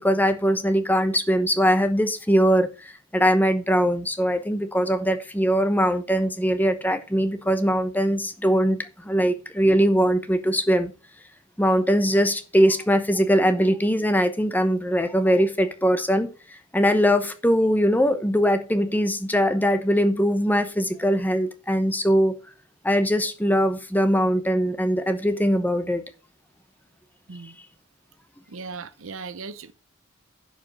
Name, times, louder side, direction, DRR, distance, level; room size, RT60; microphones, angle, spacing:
voice 1, 0.0-10.9 11.6-22.3 22.8-26.0, equal, 10° left, 0.9 m, -21 dB
voice 2, 28.5-29.7, right 4 dB, 70° right, 0.8 m, -37 dB
11.0 x 5.1 x 6.1 m
head